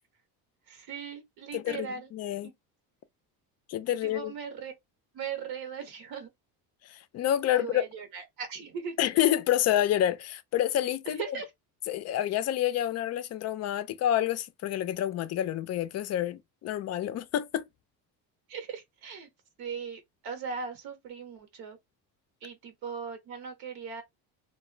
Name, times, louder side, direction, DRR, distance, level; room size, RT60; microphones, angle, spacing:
voice 1, 0.7-2.1 2.4-2.5 3.9-4.7 5.1-6.3 7.5-9.0 11.1-11.5 18.5-19.3 19.6-21.8 22.4-24.0, right 6 dB, 65° right, 0.9 m, -39 dB
voice 2, 1.5-2.5 3.7-4.3 6.8-7.8 9.0-11.4 11.9-17.6, left 11 dB, 40° left, 0.4 m, -28 dB
2.3 x 2.2 x 3.1 m
cardioid pair, 115°, 40 cm